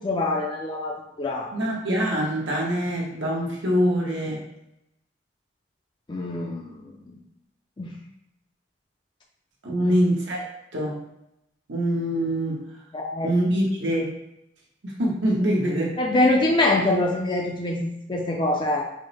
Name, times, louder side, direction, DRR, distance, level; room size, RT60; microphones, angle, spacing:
voice 1, 0.0-1.5 6.1-7.2 7.8-7.9 9.8-10.0 12.9-13.3 16.0-18.8, left 2 dB, 25° left, 0 dB, 0.4 m, -24 dB
voice 2, 1.5-4.5 9.6-10.4 10.7-11.0 11.7-12.6 13.2-14.1 14.8-16.0, equal, 80° right, -3 dB, 1.1 m, -24 dB
5.3 x 2.1 x 3.3 m, 0.82 s
head